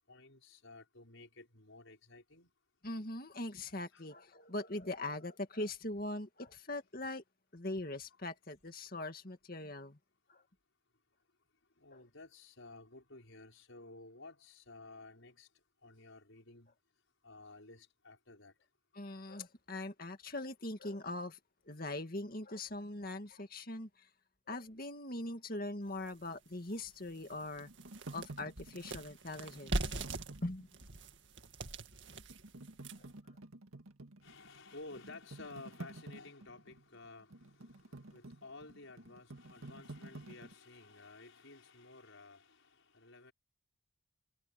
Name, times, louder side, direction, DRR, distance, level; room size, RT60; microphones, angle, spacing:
voice 1, 0.1-2.5 3.9-4.1 11.8-15.5 15.8-16.7 17.2-18.5 34.2-43.3, left 3 dB, 70° left, 5.8 m, -54 dB
voice 2, 2.8-7.2 7.5-10.0 10.3-10.4 18.9-21.4 21.7-24.1 24.5-27.7 28.1-30.1 30.4-30.7 33.0-33.1, left 2 dB, 45° left, 2.2 m, -41 dB
sound 1, 26.1-26.2 26.7-26.8 27.2-33.2, right 2 dB, 60° right, 2.1 m, -41 dB
sound 2, 27.0-31.0 31.5-31.6 32.1-40.5, right 2 dB, 90° right, 2.1 m, -51 dB
head